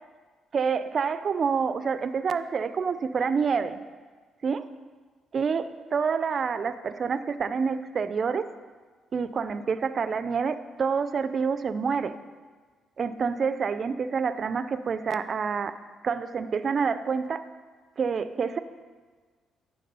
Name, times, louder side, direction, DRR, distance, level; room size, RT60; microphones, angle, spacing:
voice 1, 0.5-3.8 4.4-4.7 5.3-8.5 9.1-12.2 13.0-15.7 16.0-17.5 18.0-18.6, right 5 dB, 45° right, 12 dB, 0.4 m, -27 dB
9.3 x 3.6 x 5.4 m, 1.5 s
cardioid pair, 90°, 0 cm